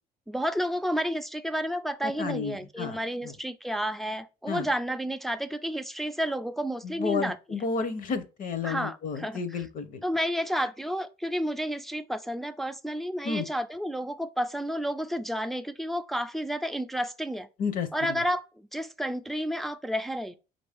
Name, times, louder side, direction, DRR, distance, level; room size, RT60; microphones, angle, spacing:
voice 1, 0.3-7.4 8.6-9.4 10.0-17.5 17.9-18.4 18.7-20.4, equal, ahead, 0.4 m, -31 dB
voice 2, 2.0-3.0 3.2-3.3 4.5-4.7 6.8-10.0 13.2-13.5 17.6-17.9, left 5 dB, 50° left, 0.7 m, -31 dB
5.1 x 2.6 x 3.4 m
cardioid pair, 110°, 17 cm